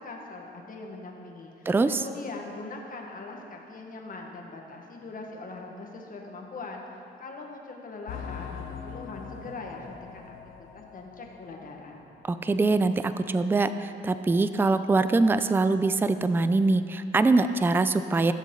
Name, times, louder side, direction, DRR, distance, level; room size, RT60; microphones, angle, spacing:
voice 1, 0.0-10.4 10.7-12.0, left 3 dB, 45° left, 1 dB, 1.6 m, -41 dB
voice 2, 1.7-2.0 12.3-18.3, right 3 dB, 10° right, 11 dB, 0.3 m, -23 dB
sound 1, 8.1-12.4 12.7-12.8 13.3-13.4, left 6 dB, 85° left, 0.9 m, -42 dB
16.0 x 7.2 x 3.8 m, 2.6 s
cardioid pair, 90°, 20 cm